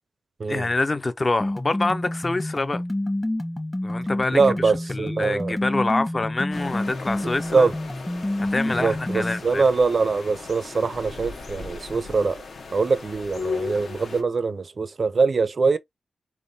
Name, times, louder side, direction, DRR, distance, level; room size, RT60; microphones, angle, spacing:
voice 1, 0.4-2.8 3.8-7.7 8.5-9.6, left 2 dB, 35° left, 0.4 m, -26 dB
sound 1, 1.4-9.4, left 1 dB, 20° left, 0.8 m, -28 dB
voice 2, 4.3-5.5 7.5-7.7 8.7-12.4 12.7-15.8, right 4 dB, 55° right, 0.4 m, -23 dB
sound 2, 6.5-14.2, left 4 dB, 75° left, 0.7 m, -37 dB
3.4 x 2.0 x 2.6 m
cardioid pair, 65°, 0 cm